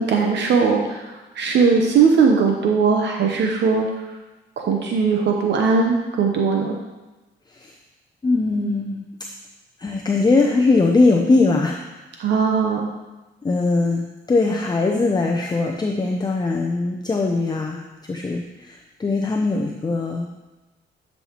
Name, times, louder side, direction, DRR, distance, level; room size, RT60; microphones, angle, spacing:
voice 1, 0.0-3.9 4.6-6.8 12.2-12.9, right 5 dB, 65° right, 1 dB, 0.9 m, -19 dB
voice 2, 8.2-9.0 9.8-11.8 13.4-20.3, left 3 dB, 20° left, 1 dB, 0.6 m, -21 dB
10.0 x 5.6 x 2.9 m, 1.1 s
cardioid pair, 90°, 20 cm